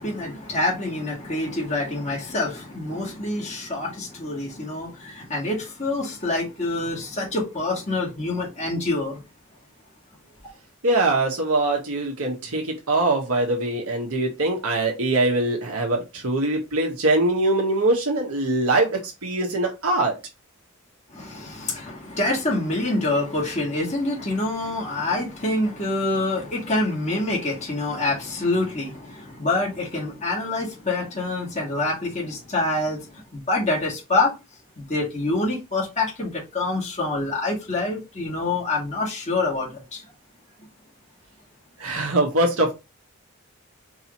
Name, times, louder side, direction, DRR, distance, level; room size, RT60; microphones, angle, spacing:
voice 1, 0.0-9.2 21.1-34.3 34.8-40.1, left 2 dB, 30° left, 1.7 m, -26 dB
voice 2, 10.8-20.2 41.8-42.7, right 2 dB, 80° right, 1.2 m, -22 dB
4.6 x 2.8 x 2.9 m
head